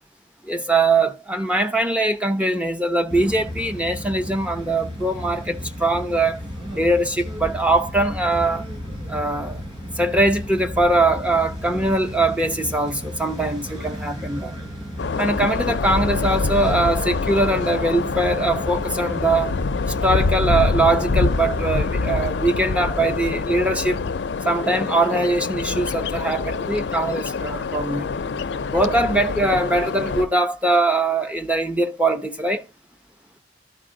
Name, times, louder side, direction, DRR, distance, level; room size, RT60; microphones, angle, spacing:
voice 1, 0.5-6.4 6.7-8.6 9.1-9.6 10.0-14.5 15.2-19.5 19.8-24.0 24.4-28.1 28.7-32.7, right 2 dB, 5° right, 0.6 m, -22 dB
sound 1, 3.1-21.8, equal, 20° right, 4.5 m, -34 dB
sound 2, 15.0-30.2, left 4 dB, 70° left, 0.4 m, -25 dB
12.5 x 4.4 x 3.7 m
head